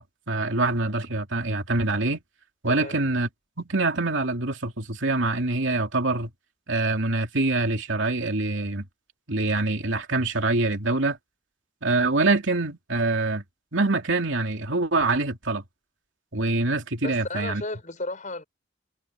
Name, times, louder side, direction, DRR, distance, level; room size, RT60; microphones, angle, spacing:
voice 1, 0.0-2.2 2.6-3.3 3.6-6.3 6.7-8.8 9.3-11.2 11.8-13.4 13.7-15.6 16.3-17.6, right 2 dB, 65° right, 3.0 m, -25 dB
voice 2, 2.7-3.0 17.0-18.4, left 2 dB, 40° left, 5.0 m, -34 dB
head